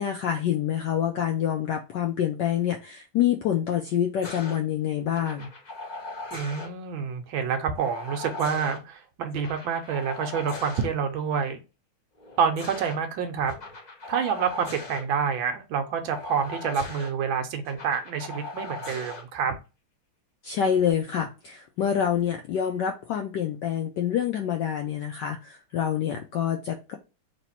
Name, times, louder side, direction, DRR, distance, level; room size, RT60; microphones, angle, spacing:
voice 1, 0.0-5.5 20.4-27.0, left 9 dB, 80° left, 1.0 m, -27 dB
sound 1, 4.2-4.6 5.1-6.7 7.8-8.8 9.3-10.9 12.2-13.0 13.5-15.0 16.1-17.1 17.7-19.2 20.5-20.9, left 2 dB, 50° left, 0.5 m, -39 dB
voice 2, 6.3-11.6 12.4-13.5 14.1-19.5, right 6 dB, 75° right, 1.3 m, -28 dB
3.3 x 3.1 x 4.1 m
omnidirectional pair, 2.4 m